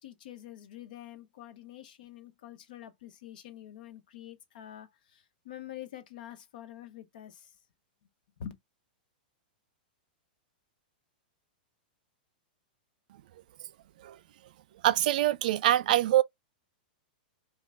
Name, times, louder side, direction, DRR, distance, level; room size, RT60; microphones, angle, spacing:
voice 1, 0.0-7.5 8.4-8.5, left 11 dB, 65° left, 1.0 m, -46 dB
voice 2, 14.8-16.2, right 14 dB, 60° right, 0.4 m, -24 dB
5.4 x 2.3 x 3.8 m
supercardioid pair, 155°, 5 cm